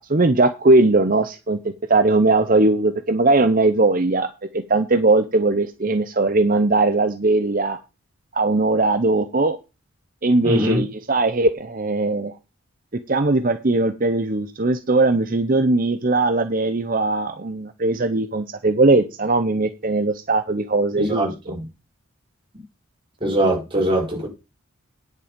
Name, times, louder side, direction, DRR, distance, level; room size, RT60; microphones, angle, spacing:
voice 1, 0.0-1.6 1.9-7.8 8.3-9.6 10.2-12.3 13.1-21.5, right 2 dB, 40° right, 9 dB, 0.7 m, -19 dB
voice 2, 10.4-10.8 21.0-21.6 23.2-24.3, right 1 dB, 25° right, -3 dB, 5.3 m, -22 dB
9.8 x 8.2 x 5.1 m, 0.29 s
head